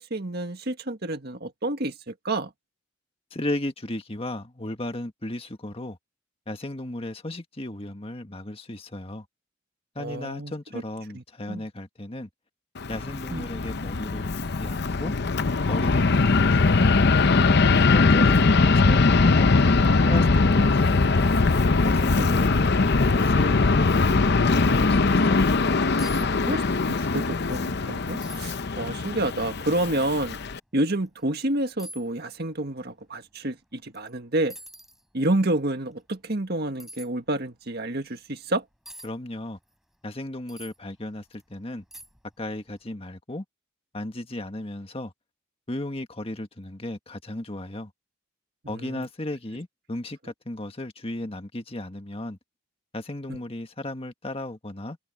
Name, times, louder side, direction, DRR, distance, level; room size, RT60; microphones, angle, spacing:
voice 1, 0.0-2.5 10.0-10.5 11.1-11.7 13.3-13.5 18.2-18.3 22.2-22.3 26.2-26.6 26.9-30.4 30.7-34.6 35.1-38.6 48.7-49.1 53.3-53.4, right 1 dB, 50° right, 1.8 m, -29 dB
voice 2, 3.3-6.0 6.5-9.2 9.9-12.3 12.9-14.3 14.6-15.1 15.7-17.1 17.8-19.5 20.0-21.4 21.8-23.9 24.3-25.6 39.0-39.6 40.0-41.8 42.4-43.4 43.9-45.1 45.7-47.9 48.7-52.4 52.9-55.0, left 1 dB, 30° left, 1.6 m, -35 dB
Fixed-wing aircraft airplane, 12.8-30.6, left 3 dB, 55° left, 0.7 m, -21 dB
sound 1, 26.0-26.3 26.6-27.1 27.5-27.6 28.2-28.6 29.3-29.4 30.9-31.0 31.8-32.1 33.9-34.1 34.5-35.0 36.8-37.1 38.9-39.1 40.5-40.8 41.3-41.4 41.9-42.3 42.6-42.7, right 1 dB, ahead, 6.4 m, -44 dB
head